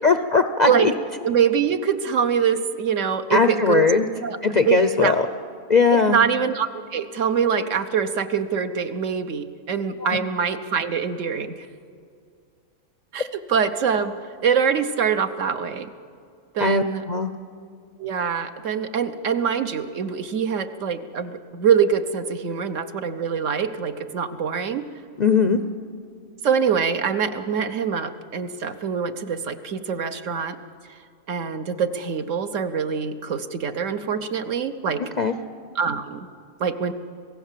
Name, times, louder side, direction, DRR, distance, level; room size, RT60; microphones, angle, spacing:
voice 1, 0.0-0.9 3.3-4.1 4.4-5.3 5.7-6.2 10.0-10.2 16.6-17.3 25.2-25.6 35.0-35.4, left 4 dB, 50° left, 8 dB, 0.5 m, -19 dB
voice 2, 1.2-3.9 4.2-4.4 4.6-5.1 5.9-11.7 13.1-14.2 14.4-15.9 16.5-17.0 18.0-24.8 26.4-30.6 31.3-35.0 35.7-36.3 36.6-36.9, right 7 dB, 65° right, 8 dB, 1.2 m, -24 dB
26.5 x 17.5 x 7.4 m, 2.3 s
omnidirectional pair, 1.5 m